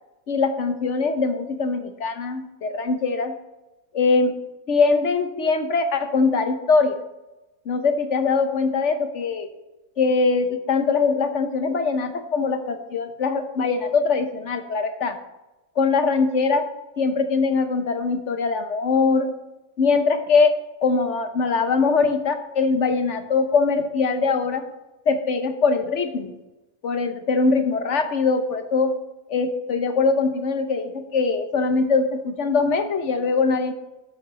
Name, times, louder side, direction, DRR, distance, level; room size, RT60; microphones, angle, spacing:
voice 1, 0.3-3.4 3.9-4.4 4.7-7.0 7.7-9.5 10.0-15.2 15.8-16.7 17.0-19.3 19.8-24.7 25.1-26.3 26.8-29.0 29.3-33.7, left 4 dB, 60° left, 8 dB, 1.2 m, -22 dB
11.5 x 7.8 x 4.1 m, 1.0 s
omnidirectional pair, 1.5 m